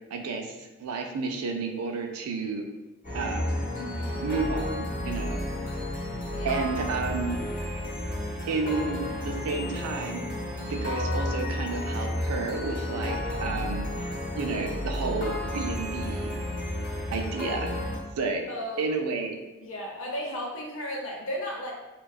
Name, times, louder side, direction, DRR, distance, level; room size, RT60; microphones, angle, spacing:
voice 1, 0.1-2.7 3.1-3.6 4.2-5.4 6.4-7.6 8.5-16.3 17.1-17.7 18.2-18.4 18.8-19.4, right 4 dB, 85° right, 4 dB, 0.4 m, -31 dB
sound 1, 3.0-18.0, left 1 dB, 35° left, 0.8 m, -32 dB
voice 2, 3.7-4.3 5.1-5.6 6.3-6.6 18.5-18.8 19.6-21.7, equal, 65° left, -1 dB, 0.6 m, -35 dB
2.6 x 2.2 x 2.3 m, 1.1 s
head